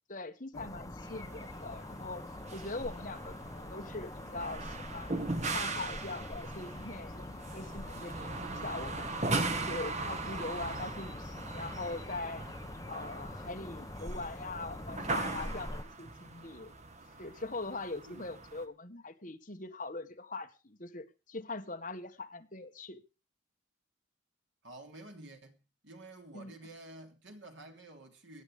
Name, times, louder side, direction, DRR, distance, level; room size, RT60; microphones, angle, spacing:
voice 1, 0.1-2.2 2.5-5.2 5.5-9.2 9.5-12.4 12.9-16.7 17.2-23.0 26.3-26.5, left 2 dB, 40° left, 1.7 m, -42 dB
sound 1, 0.5-15.8, left 1 dB, 15° left, 1.0 m, -44 dB
sound 2, 1.0-18.6, right 3 dB, 35° right, 1.5 m, -39 dB
voice 2, 18.1-18.4 24.6-28.4, right 2 dB, 65° right, 3.1 m, -51 dB
16.5 x 10.0 x 5.1 m
head